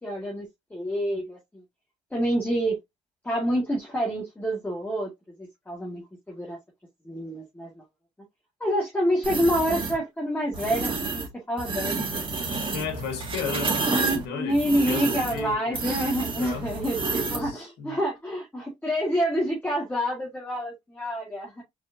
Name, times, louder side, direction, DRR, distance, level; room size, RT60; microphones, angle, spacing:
voice 1, 0.0-1.4 2.1-2.8 3.2-5.1 5.7-6.0 6.3-6.6 7.0-7.8 8.6-12.1 13.9-21.6, equal, 10° left, 1.8 m, -27 dB
sound 1, 9.2-10.0 10.5-11.3 11.6-17.5, right 3 dB, 30° right, 2.2 m, -29 dB
voice 2, 12.7-14.6 14.9-15.8 16.3-16.7 17.0-17.1 17.4-18.0, left 6 dB, 85° left, 1.8 m, -35 dB
4.5 x 4.3 x 2.7 m
cardioid pair, 110°, 17 cm